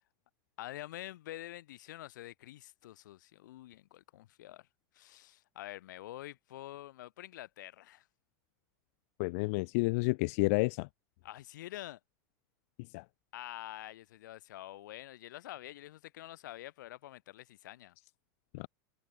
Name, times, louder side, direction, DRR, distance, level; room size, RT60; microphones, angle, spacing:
voice 1, 0.6-4.7 4.9-8.1 11.2-12.0 13.3-17.9, left 15 dB, 75° left, 3.1 m, -47 dB
voice 2, 9.2-10.9 12.9-13.0 18.5-18.7, left 27 dB, 50° left, 0.4 m, -30 dB
supercardioid pair, 150°, 10 cm